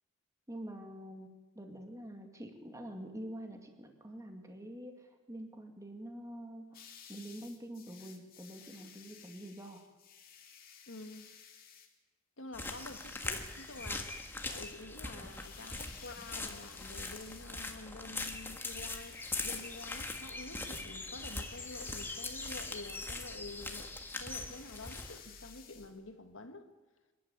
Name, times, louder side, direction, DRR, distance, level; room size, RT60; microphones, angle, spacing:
voice 1, 0.5-1.3 1.5-6.8 7.1-9.8, right 1 dB, 15° right, 4 dB, 2.3 m, -46 dB
sound 1, 6.7-11.9 12.6-17.5 18.3-20.3 21.0-22.9 23.5-25.9, left 8 dB, 45° left, 2.5 m, -56 dB
voice 2, 10.9-11.3 12.4-14.1 14.5-26.7, left 2 dB, 85° left, 6 dB, 1.9 m, -48 dB
sound 2, 12.5-25.2, left 2 dB, 10° left, 1.6 m, -41 dB
sound 3, 13.0-25.9, equal, 35° right, 2.3 m, -59 dB
25.5 x 11.5 x 8.9 m, 1.3 s
head